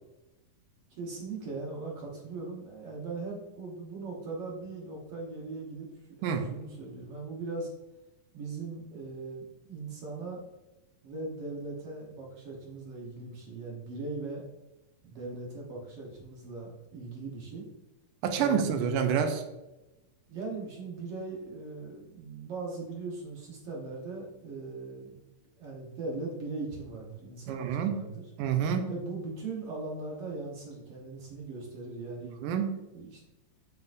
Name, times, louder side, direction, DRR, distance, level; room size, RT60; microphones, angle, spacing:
voice 1, 0.9-5.9 6.2-7.7 8.3-10.4 11.0-14.4 15.0-17.6 18.4-18.9 20.3-25.1 25.6-28.2 28.8-32.3 32.9-33.2, right 3 dB, 60° right, -2 dB, 1.7 m, -39 dB
voice 2, 18.2-19.4 27.5-28.0 28.4-28.9 32.4-32.7, right 7 dB, 80° right, 7 dB, 2.2 m, -28 dB
7.7 x 5.8 x 2.6 m, 0.98 s
omnidirectional pair, 3.8 m